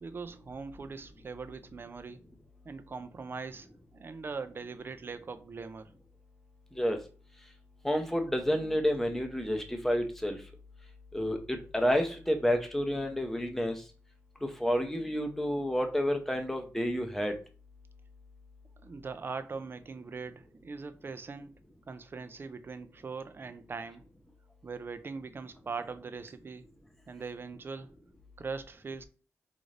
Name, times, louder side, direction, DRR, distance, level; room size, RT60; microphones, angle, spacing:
voice 1, 0.0-2.2 2.6-5.9 18.8-21.6 21.9-24.0 24.6-26.7 27.1-27.9 28.4-29.0, right 4 dB, 40° right, 0.4 m, -41 dB
voice 2, 7.8-10.4 11.1-13.8 14.4-17.3, equal, 5° left, 0.7 m, -30 dB
3.9 x 2.5 x 3.2 m
wide cardioid pair, 100°, 6 cm